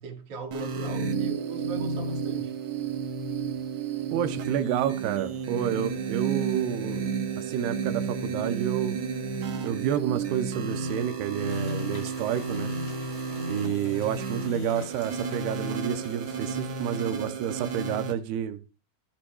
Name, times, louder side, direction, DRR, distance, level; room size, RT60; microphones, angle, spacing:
voice 1, 0.0-2.5, right 3 dB, 45° right, 2.4 m, -40 dB
sound 1, 0.5-18.1, right 5 dB, 60° right, 1.7 m, -32 dB
voice 2, 4.1-7.1 7.4-9.0 9.6-12.7 13.5-18.6, right 10 dB, 85° right, 2.8 m, -29 dB
sound 2, 11.5-18.0, left 4 dB, 45° left, 2.9 m, -49 dB
14.0 x 10.5 x 2.3 m
omnidirectional pair, 4.5 m